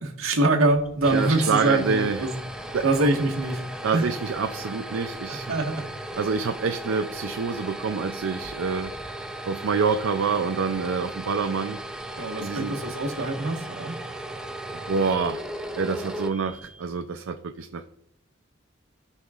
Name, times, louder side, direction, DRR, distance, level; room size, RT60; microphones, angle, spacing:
voice 1, 0.0-2.3 2.8-3.5 3.9-4.0 5.3-5.8 12.2-13.9, right 2 dB, 85° right, 1 dB, 1.5 m, -24 dB
sound 1, 0.7-17.0, right 1 dB, 5° right, 0.4 m, -37 dB
voice 2, 1.1-2.3 2.7-3.1 3.8-5.5 6.2-8.9 9.5-11.8 12.4-12.8 14.7-15.4 15.8-17.9, right 5 dB, 65° right, 6 dB, 0.4 m, -27 dB
17.0 x 5.7 x 2.4 m, 0.76 s
head